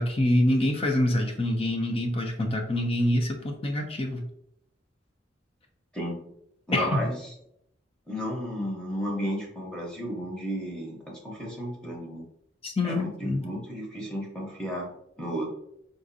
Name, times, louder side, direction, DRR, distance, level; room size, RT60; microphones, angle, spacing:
voice 1, 0.0-4.2 6.7-7.0 12.6-13.4, left 1 dB, 30° left, 3 dB, 0.5 m, -25 dB
voice 2, 6.7-7.3 8.1-12.3 12.8-14.9 15.2-15.5, equal, 5° left, -3 dB, 0.9 m, -33 dB
3.8 x 2.5 x 2.6 m, 0.75 s
head